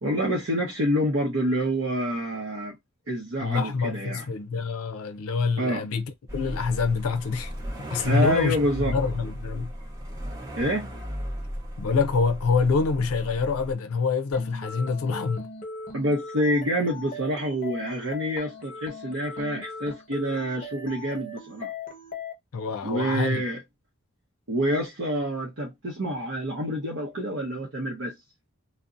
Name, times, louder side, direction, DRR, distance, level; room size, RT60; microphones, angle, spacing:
voice 1, 0.0-2.8 3.1-4.3 5.6-5.9 8.0-9.0 10.6-10.9 15.9-21.7 22.8-23.6 24.5-28.1, equal, 60° right, 0.7 m, -27 dB
voice 2, 3.4-6.0 6.3-7.5 7.9-8.6 8.9-9.7 11.8-15.5 22.5-23.4, left 4 dB, 80° left, 0.4 m, -26 dB
sound 1, 6.3-13.7, equal, 15° right, 0.6 m, -36 dB
sound 2, 14.3-22.3, left 3 dB, 40° left, 0.7 m, -39 dB
2.6 x 2.0 x 2.4 m
head